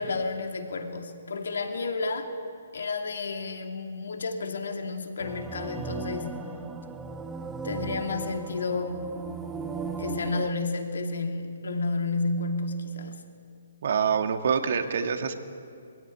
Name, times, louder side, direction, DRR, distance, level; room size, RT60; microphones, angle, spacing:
voice 1, 0.0-2.3 2.7-6.4 7.6-9.2 9.9-13.2, left 3 dB, 70° left, 4 dB, 2.7 m, -31 dB
sound 1, 5.2-10.5, right 5 dB, 10° right, 1.2 m, -36 dB
voice 2, 13.8-15.3, right 6 dB, 60° right, 7 dB, 1.9 m, -26 dB
22.0 x 16.0 x 9.6 m, 2.4 s
figure-of-eight pair, 135°, 0 cm